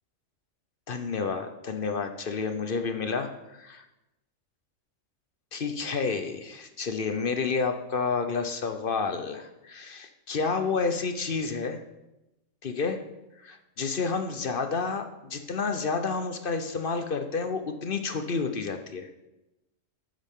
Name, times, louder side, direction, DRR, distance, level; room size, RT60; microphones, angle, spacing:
voice 1, 0.9-3.8 5.5-11.8 12.6-13.0 13.4-19.1, left 4 dB, 50° left, 7 dB, 0.9 m, -30 dB
12.0 x 9.1 x 3.6 m, 0.96 s
omnidirectional pair, 1.3 m